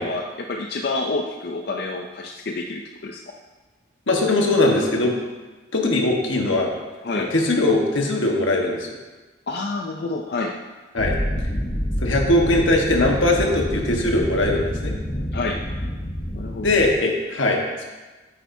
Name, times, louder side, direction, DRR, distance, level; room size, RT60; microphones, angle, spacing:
voice 1, 0.0-3.2 7.0-7.3 9.5-10.6 15.3-15.6 16.3-16.7, left 3 dB, 55° left, 2 dB, 0.5 m, -28 dB
voice 2, 4.1-5.1 5.7-6.7 7.1-8.9 10.9-11.2 12.0-15.0 16.5-17.9, left 2 dB, 90° left, 1 dB, 1.4 m, -20 dB
sound 1, 11.0-17.0, equal, 40° left, 0.9 m, -27 dB
9.0 x 8.6 x 2.7 m, 1.2 s
head